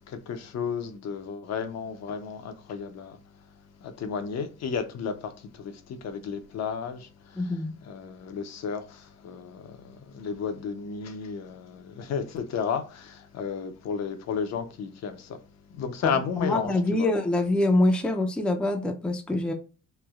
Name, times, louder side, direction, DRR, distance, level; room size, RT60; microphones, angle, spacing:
voice 1, 0.1-7.6 7.8-17.1, left 6 dB, 60° left, 0.6 m, -33 dB
voice 2, 7.4-7.8 16.0-19.5, left 2 dB, 5° left, 0.4 m, -25 dB
3.2 x 2.2 x 2.3 m
cardioid pair, 90°, 30 cm